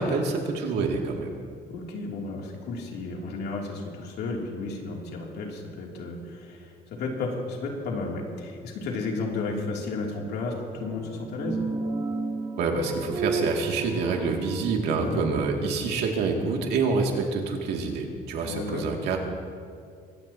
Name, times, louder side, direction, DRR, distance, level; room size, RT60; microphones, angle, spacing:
voice 1, 0.0-1.3 12.6-19.2, right 4 dB, 80° right, 1 dB, 2.5 m, -27 dB
voice 2, 1.7-11.6 15.0-15.3 18.4-18.9, left 3 dB, 75° left, -1 dB, 3.0 m, -33 dB
sound 1, 10.5-15.5, right 3 dB, 25° right, 3.0 m, -33 dB
23.5 x 17.5 x 2.9 m, 2.2 s
cardioid pair, 110°, 17 cm